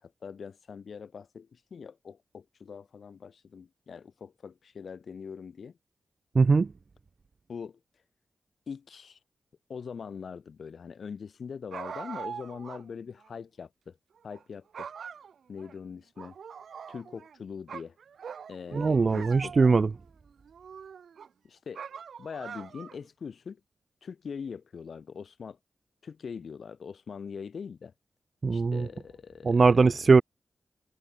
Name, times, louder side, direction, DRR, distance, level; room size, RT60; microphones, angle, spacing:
voice 1, 0.0-5.8 7.5-7.8 8.7-9.2 9.7-14.0 14.2-14.9 15.5-16.3 16.9-18.0 18.5-19.8 21.4-21.8 22.2-23.6 24.0-25.6 26.0-27.9 28.5-30.0, left 6 dB, 75° left, 1.9 m, -42 dB
voice 2, 6.4-6.7 18.7-19.9 28.4-28.9 29.5-30.2, right 4 dB, 50° right, 0.4 m, -21 dB
sound 1, 11.7-12.8 13.2-13.3 14.2-14.4 14.7-15.7 16.2-17.4 17.7-19.9 20.4-21.3 21.7-23.1, right 7 dB, 85° right, 2.1 m, -42 dB
cardioid pair, 60°, 0 cm